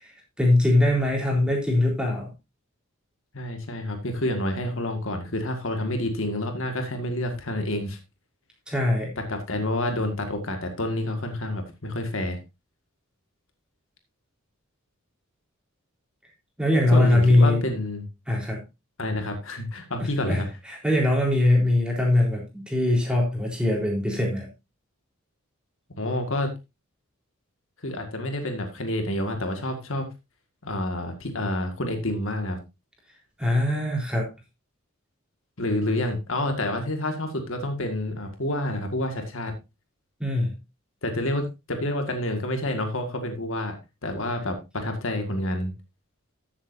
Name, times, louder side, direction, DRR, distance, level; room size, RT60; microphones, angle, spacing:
voice 1, 0.4-2.3 8.7-9.1 16.6-17.6 18.3-18.6 20.0-20.4 20.7-24.5 33.4-34.3 40.2-40.5, left 1 dB, 5° right, -1 dB, 3.8 m, -22 dB
voice 2, 3.3-8.0 9.2-12.4 16.9-18.1 19.0-20.5 26.0-26.5 27.8-30.1 30.6-32.6 35.6-39.5 41.0-43.8 44.0-45.7, left 1 dB, 65° left, 5 dB, 1.9 m, -28 dB
14.0 x 7.5 x 2.7 m, 0.24 s
head